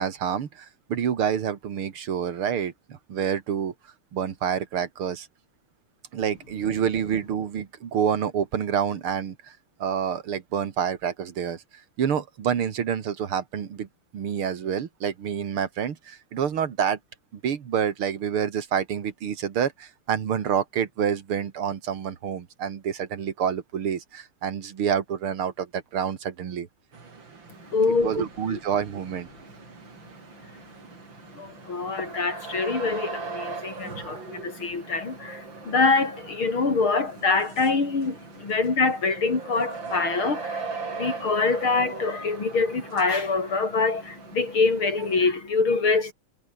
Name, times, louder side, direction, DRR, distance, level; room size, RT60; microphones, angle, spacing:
voice 1, 0.0-3.7 4.1-5.3 6.1-11.6 12.0-13.9 14.1-17.0 17.3-26.7 28.0-29.3, right 8 dB, 85° right, 2.7 m, -28 dB
sound 1, 26.9-45.3, right 4 dB, 60° right, 4.1 m, -40 dB
voice 2, 27.7-28.2 28.5-28.6 31.3-46.1, left 4 dB, 75° left, 5.1 m, -25 dB
omnidirectional pair, 2.3 m